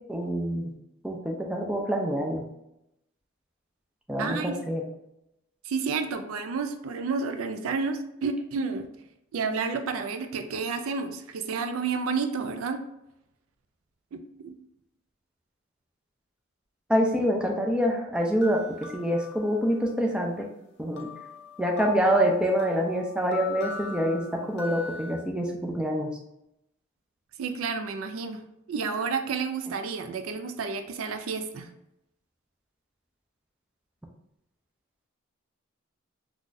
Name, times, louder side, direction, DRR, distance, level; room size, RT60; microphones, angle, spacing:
voice 1, 0.1-0.7 1.0-2.4 4.1-4.8 16.9-18.6 18.9-20.5 20.8-21.1 21.6-26.1, equal, 5° right, 0 dB, 0.4 m, -26 dB
voice 2, 4.2-4.6 5.6-8.9 9.3-12.8 14.1-14.5 27.4-28.4 28.7-31.7, right 5 dB, 85° right, 7 dB, 0.4 m, -30 dB
sound 1, 18.1-20.0 21.0-25.2, left 4 dB, 55° left, 0.6 m, -40 dB
3.9 x 2.4 x 2.5 m, 0.83 s
head